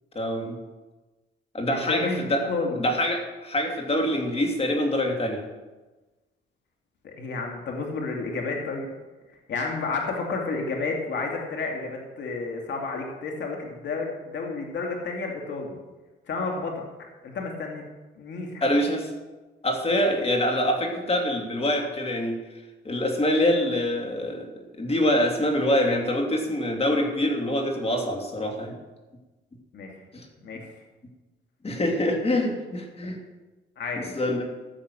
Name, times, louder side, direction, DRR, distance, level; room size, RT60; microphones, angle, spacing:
voice 1, 0.1-0.6 1.5-2.5 2.8-5.4 18.6-19.0 19.6-22.4 22.8-24.5 24.8-28.8 30.1-30.2 31.6-33.2 34.0-34.4, left 1 dB, 30° left, 2 dB, 3.0 m, -25 dB
voice 2, 1.7-2.2 2.5-2.8 7.0-8.9 9.5-15.8 16.3-16.8 17.2-17.8 18.2-18.7 29.7-29.9 30.4-30.7 33.0-33.1 33.8-34.2, left 3 dB, 65° left, 1 dB, 2.5 m, -31 dB
15.0 x 7.4 x 6.3 m, 1.2 s
cardioid pair, 90°, 20 cm